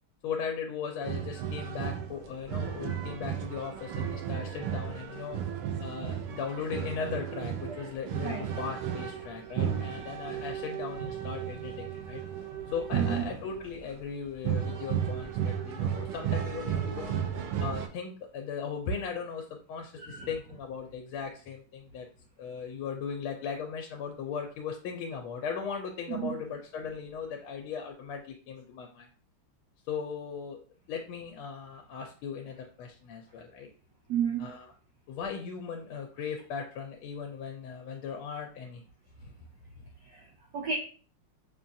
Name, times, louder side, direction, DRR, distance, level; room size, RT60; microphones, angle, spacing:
voice 1, 0.2-5.4 5.8-12.2 12.7-17.2 17.6-22.1 22.4-29.1 29.9-30.6 30.9-33.7 34.4-34.7 35.1-38.8 39.2-39.3 39.8-39.9, left 6 dB, 80° left, 3 dB, 1.4 m, -38 dB
sound 1, 1.0-13.9 14.4-17.9, right 9 dB, 85° right, 1.5 m, -34 dB
voice 2, 12.9-13.3 20.0-20.3 26.1-26.4 34.1-34.5 40.0-40.8, right 7 dB, 70° right, 0 dB, 1.0 m, -33 dB
5.6 x 2.3 x 2.5 m, 0.40 s
omnidirectional pair, 2.3 m